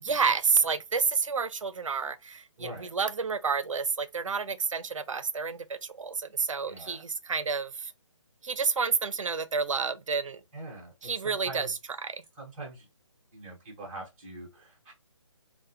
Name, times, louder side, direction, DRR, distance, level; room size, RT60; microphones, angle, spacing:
voice 1, 0.0-7.9 8.4-10.4 11.0-12.2, right 5 dB, 80° right, 0.5 m, -29 dB
voice 2, 2.6-2.9 6.7-7.0 10.5-11.7 12.4-12.9 13.3-14.9, right 2 dB, 20° right, 1.0 m, -43 dB
3.3 x 2.1 x 2.8 m
figure-of-eight pair, 155°, 16 cm